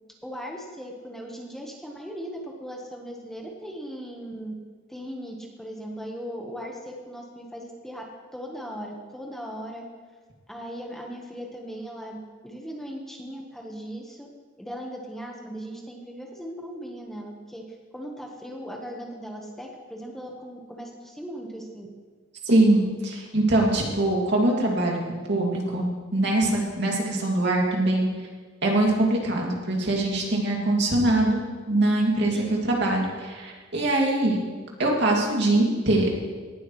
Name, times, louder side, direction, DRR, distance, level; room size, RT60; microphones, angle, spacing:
voice 1, 0.2-4.5 4.9-8.0 8.3-9.8 10.5-12.2 12.4-14.3 14.6-17.7 17.9-21.9 32.3-32.6, equal, ahead, 0 dB, 1.2 m, -38 dB
voice 2, 22.5-28.1 28.6-34.4 34.8-36.1, right 1 dB, 60° right, -1 dB, 2.5 m, -23 dB
18.5 x 11.5 x 3.2 m, 1.5 s
head